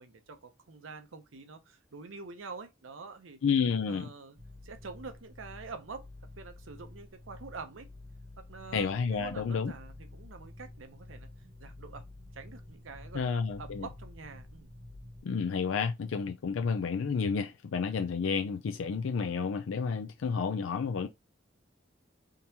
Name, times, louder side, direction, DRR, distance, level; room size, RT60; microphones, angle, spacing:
voice 1, 0.0-3.4 3.9-4.4 4.6-6.1 6.4-7.9 8.4-11.3 11.6-12.1 12.3-14.7, right 4 dB, 85° right, 0.7 m, -46 dB
voice 2, 3.4-4.1 8.7-9.7 13.1-13.9 15.2-21.1, left 5 dB, 90° left, 0.4 m, -30 dB
sound 1, 4.4-15.2, left 2 dB, 60° right, 1.4 m, -50 dB
3.7 x 2.8 x 2.8 m
head